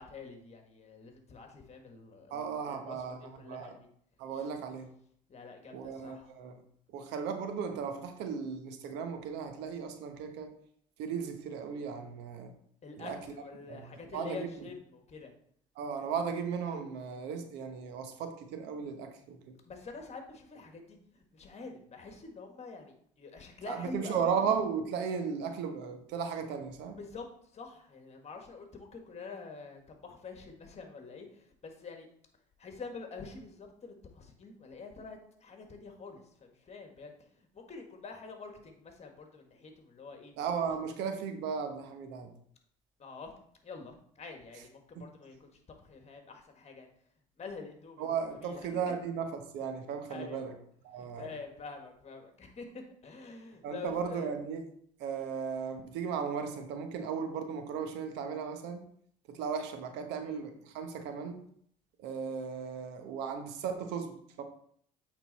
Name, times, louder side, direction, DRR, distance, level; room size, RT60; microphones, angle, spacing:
voice 1, 0.0-3.9 4.3-4.5 5.3-6.3 12.8-15.3 19.6-24.3 26.9-32.1 32.6-40.3 43.0-43.3 43.6-46.9 47.4-48.8 50.1-50.5 50.9-54.3 60.2-60.4, left 4 dB, 35° left, 4 dB, 1.8 m, -47 dB
voice 2, 2.3-3.7 4.2-4.9 5.7-6.5 6.9-10.5 11.0-12.5 13.0-13.2 13.7-13.8 14.1-14.5 15.8-19.6 23.7-27.0 40.4-42.3 45.0-45.1 48.0-49.3 49.5-50.5 50.9-51.3 53.6-54.6 55.0-58.8 59.3-61.4 62.0-64.4, right 6 dB, 75° right, 7 dB, 1.0 m, -36 dB
8.5 x 3.9 x 4.1 m, 0.64 s
supercardioid pair, 70°, 18 cm